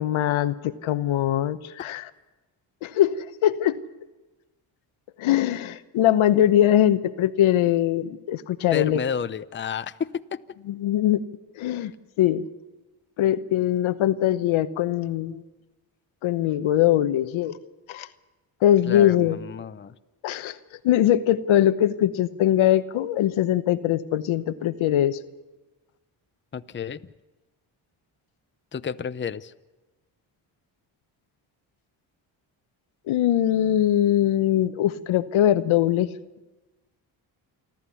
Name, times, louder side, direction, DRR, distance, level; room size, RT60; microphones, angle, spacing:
voice 1, 0.0-2.1 2.8-3.8 5.2-9.0 10.7-11.2 11.6-11.9 12.2-12.4 13.2-15.4 16.2-17.6 17.9-18.1 18.6-19.4 20.2-20.6 20.8-25.2 33.1-36.1, left 12 dB, 80° left, 12 dB, 1.0 m, -22 dB
voice 2, 8.7-10.4 18.9-19.9 26.5-27.0 28.7-29.5, left 7 dB, 25° left, 12 dB, 0.7 m, -31 dB
28.0 x 12.0 x 8.5 m, 1.1 s
cardioid pair, 70°, 48 cm